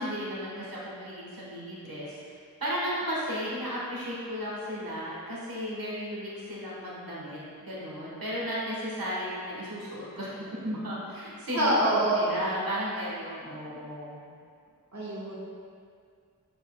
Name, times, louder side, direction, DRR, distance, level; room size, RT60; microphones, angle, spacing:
voice 1, 0.0-2.2 2.6-14.2, equal, 80° right, -7 dB, 1.3 m, -34 dB
voice 2, 11.5-12.3 14.9-15.3, right 1 dB, 50° right, -7 dB, 1.3 m, -25 dB
8.5 x 5.2 x 2.2 m, 2.2 s
wide cardioid pair, 50°, 35 cm